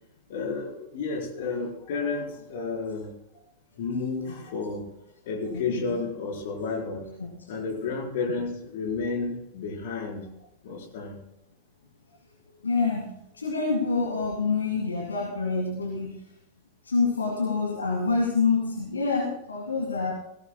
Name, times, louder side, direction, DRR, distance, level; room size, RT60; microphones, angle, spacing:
voice 1, 0.3-3.1 3.8-4.9 5.2-7.1 7.5-11.2, left 4 dB, 55° left, 0 dB, 4.4 m, -31 dB
voice 2, 5.5-5.9 7.2-7.3 12.6-16.2 16.8-20.1, left 4 dB, 75° left, -1 dB, 2.3 m, -27 dB
18.0 x 16.5 x 2.3 m, 0.79 s
figure-of-eight pair, 90°, 0 cm